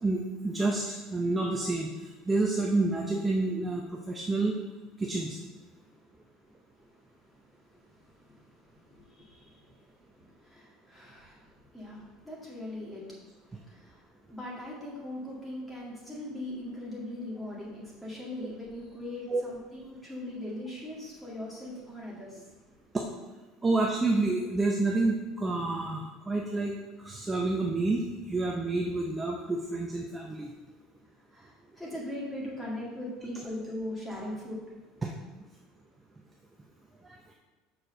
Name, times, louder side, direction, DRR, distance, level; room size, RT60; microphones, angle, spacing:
voice 1, 0.0-1.9 2.3-4.5 5.0-5.4 19.3-19.4 22.9-23.1 23.6-26.8 27.0-28.0 28.3-30.5 35.0-35.1 37.0-37.2, right 2 dB, 10° right, 0 dB, 0.6 m, -28 dB
voice 2, 6.8-13.1 13.4-22.5 23.7-23.8 31.3-34.6, left 1 dB, 5° left, -5 dB, 2.1 m, -41 dB
6.5 x 4.4 x 6.6 m, 1.3 s
cardioid pair, 165°, 0 cm